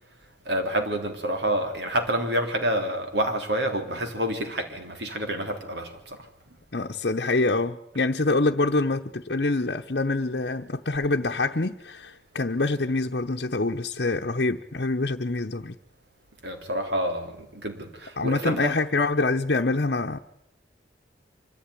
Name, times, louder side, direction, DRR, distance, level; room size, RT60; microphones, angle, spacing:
voice 1, 0.5-6.6 16.4-18.7, right 1 dB, 75° right, 3.4 m, -28 dB
voice 2, 6.7-15.8 18.2-20.2, left 2 dB, 65° left, 0.9 m, -25 dB
25.0 x 15.0 x 9.9 m
head